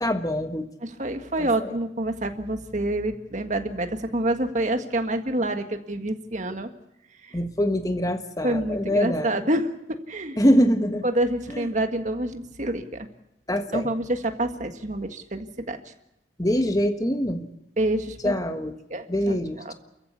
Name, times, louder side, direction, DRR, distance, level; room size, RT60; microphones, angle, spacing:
voice 1, 0.0-0.7 1.4-1.7 7.3-9.4 10.4-11.0 11.5-11.7 13.5-13.9 16.4-17.5 18.2-18.8 19.1-19.7, equal, 20° left, 7 dB, 1.4 m, -24 dB
voice 2, 0.8-6.7 7.2-7.4 8.4-10.4 11.0-13.1 13.7-15.8 17.8-18.3 18.9-19.4 19.7-19.8, right 1 dB, 40° right, 7 dB, 1.7 m, -27 dB
29.0 x 14.5 x 8.4 m, 0.84 s
head